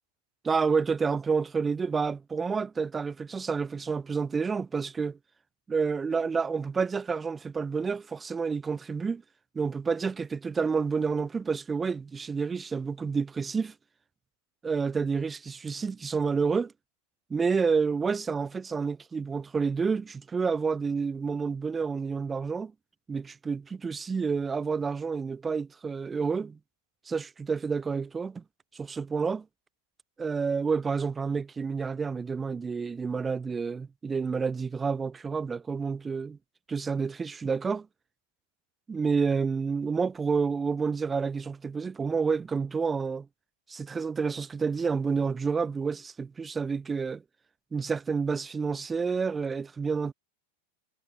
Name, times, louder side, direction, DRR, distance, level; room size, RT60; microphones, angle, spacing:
voice 1, 0.4-5.2 5.7-9.2 9.5-13.7 14.6-16.7 17.3-22.7 23.1-26.6 27.1-28.4 28.7-29.4 30.2-36.4 36.7-37.9 38.9-43.3 43.7-47.2 47.7-50.1, right 5 dB, 15° right, 1.1 m, -29 dB
figure-of-eight pair, 90°, 0 cm